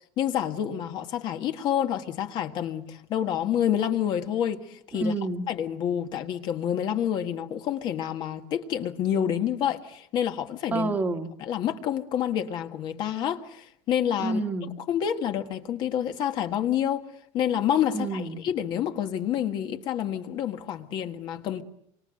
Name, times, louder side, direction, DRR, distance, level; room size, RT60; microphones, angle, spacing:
voice 1, 0.2-5.1 5.5-10.9 11.4-14.4 14.9-17.1 17.3-21.6, left 10 dB, 40° left, 1.8 m, -28 dB
voice 2, 5.0-5.5 10.7-11.3 14.2-14.7 17.9-18.4, right 2 dB, 15° right, 1.6 m, -28 dB
28.0 x 25.0 x 7.9 m
cardioid pair, 180°, 12 cm